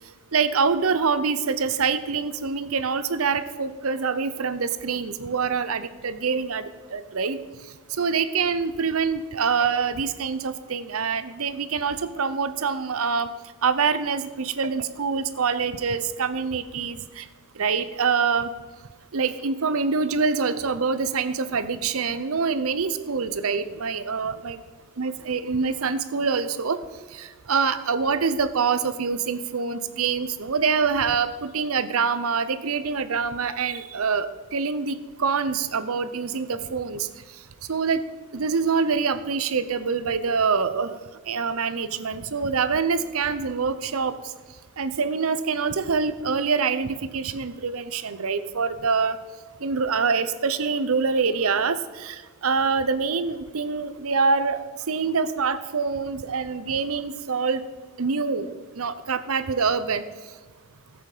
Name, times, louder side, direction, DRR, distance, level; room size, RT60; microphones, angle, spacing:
voice 1, 0.3-6.6 6.9-7.4 8.0-13.3 13.6-17.2 17.6-18.5 19.1-24.6 25.0-26.8 27.2-34.3 34.5-37.1 37.7-38.0 38.3-40.9 41.3-44.1 44.8-49.2 49.6-57.6 58.0-60.0, right 5 dB, 75° right, 12 dB, 0.7 m, -25 dB
14.0 x 8.0 x 5.0 m, 1.3 s
head